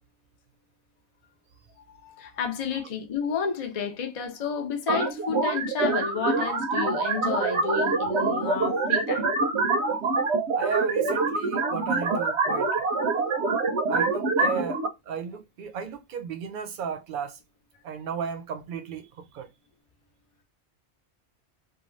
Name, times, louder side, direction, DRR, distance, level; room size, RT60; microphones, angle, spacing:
voice 1, 1.9-9.3, left 6 dB, 45° left, 0.5 m, -31 dB
sound 1, 4.9-14.9, right 3 dB, 90° right, 1.0 m, -25 dB
voice 2, 9.8-10.1 10.5-12.8 13.9-17.4 17.8-19.5, right 7 dB, 55° right, 0.7 m, -34 dB
2.7 x 2.2 x 3.0 m
omnidirectional pair, 1.1 m